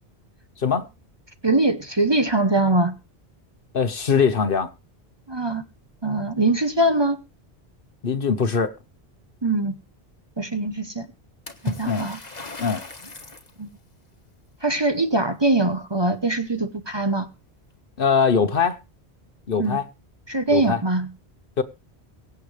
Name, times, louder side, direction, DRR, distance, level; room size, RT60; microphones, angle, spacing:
voice 1, 1.4-2.9 5.3-5.6 6.0-7.2 9.4-9.7 10.4-11.1 11.6-12.2 13.6-13.7 14.6-17.3 19.6-19.8 20.3-21.1, right 2 dB, 25° right, 1.0 m, -22 dB
voice 2, 3.7-4.7 8.0-8.7 11.8-12.1 12.6-12.8 18.0-18.8 19.5-19.9 20.5-20.8 21.6-21.7, left 6 dB, 55° left, 1.2 m, -21 dB
Water / Splash splatter, 11.5-13.5, left 3 dB, 40° left, 1.7 m, -35 dB
23.5 x 8.3 x 3.3 m
omnidirectional pair, 1.1 m